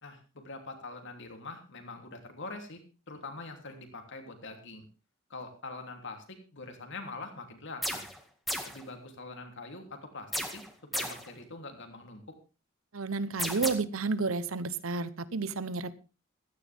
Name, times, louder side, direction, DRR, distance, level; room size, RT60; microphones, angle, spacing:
voice 1, 0.0-2.8 3.1-4.9 5.3-8.1 8.6-10.6 10.9-12.2, left 3 dB, 65° left, 5 dB, 3.2 m, -44 dB
sound 1, 7.8-8.2 8.5-8.8 10.3-11.3 13.4-13.7, equal, ahead, 2.1 m, -34 dB
voice 2, 12.9-15.9, right 4 dB, 85° right, 17 dB, 0.9 m, -31 dB
15.5 x 13.5 x 3.6 m, 0.32 s
head